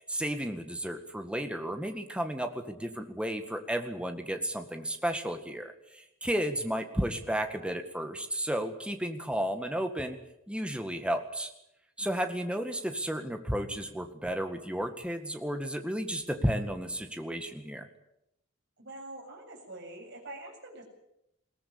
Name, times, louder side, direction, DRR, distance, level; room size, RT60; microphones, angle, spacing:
voice 1, 0.0-10.2 10.5-11.5 12.0-17.9, equal, 5° right, 6 dB, 1.9 m, -33 dB
voice 2, 18.8-20.8, right 2 dB, 55° right, 1 dB, 7.8 m, -46 dB
21.5 x 18.0 x 8.8 m, 0.81 s
head